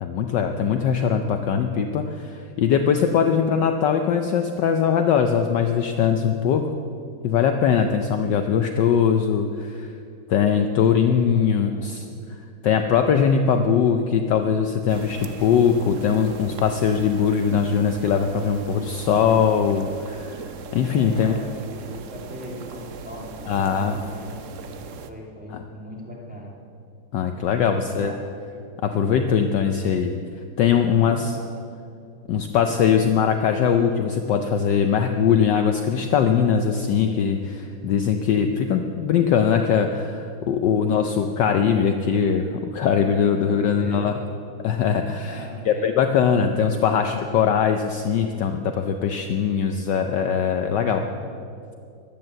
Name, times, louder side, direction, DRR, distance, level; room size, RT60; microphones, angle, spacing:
voice 1, 0.0-6.7 7.2-9.9 10.3-12.0 12.3-20.4 20.7-21.3 23.5-24.0 25.5-25.6 27.1-28.1 28.8-30.2 30.6-31.3 32.3-44.2 44.6-51.0, left 7 dB, 70° left, 6 dB, 1.2 m, -21 dB
voice 2, 11.3-12.0 20.9-24.4 25.1-26.6 27.6-28.2 30.9-31.5 43.4-44.1 45.2-45.9 50.7-51.2, left 1 dB, 5° right, -4 dB, 2.3 m, -39 dB
sound 1, 14.9-25.1, right 5 dB, 70° right, 0.7 m, -39 dB
13.5 x 11.0 x 7.6 m, 2.4 s
omnidirectional pair, 2.3 m